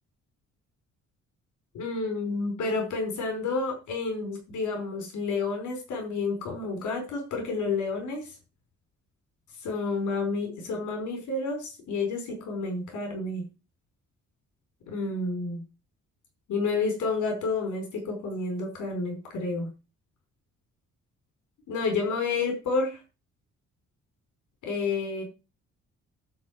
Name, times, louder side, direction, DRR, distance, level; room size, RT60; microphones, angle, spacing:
voice 1, 1.7-8.3 9.6-13.4 14.9-15.6 16.5-19.7 21.7-23.0 24.6-25.2, left 3 dB, 85° left, 3 dB, 4.4 m, -30 dB
11.5 x 4.4 x 7.5 m, 0.30 s
cardioid pair, 155°, 29 cm